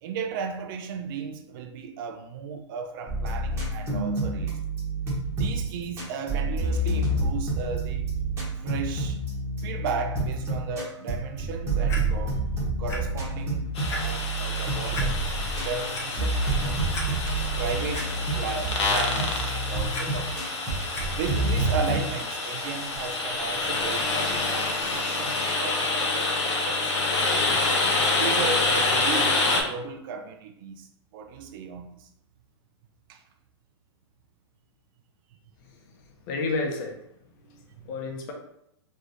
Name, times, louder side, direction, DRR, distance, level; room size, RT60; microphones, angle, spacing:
voice 1, 0.0-4.6 5.3-8.1 8.6-9.2 9.6-12.4 12.8-15.2 15.5-16.8 17.2-27.6 28.1-32.1 33.1-33.2 37.5-37.9, right 5 dB, 50° right, 0.4 m, -35 dB
sound 1, 3.1-22.0, right 2 dB, 20° right, 1.1 m, -28 dB
Clock, 11.9-12.0 12.9-13.0 13.4-13.5 13.9-14.0 14.9-15.1 15.7-16.0 16.6-16.7 16.9-17.1 17.5-18.1 18.9-19.4 19.7-20.0 20.9-21.0 21.8-21.9, left 2 dB, 20° left, 0.7 m, -35 dB
sound 2, 13.7-29.6, left 3 dB, 75° left, 1.0 m, -27 dB
voice 2, 35.6-37.0 37.8-38.3, left 3 dB, 40° left, 0.9 m, -31 dB
3.4 x 3.3 x 2.7 m
hypercardioid pair, 135°, 15 cm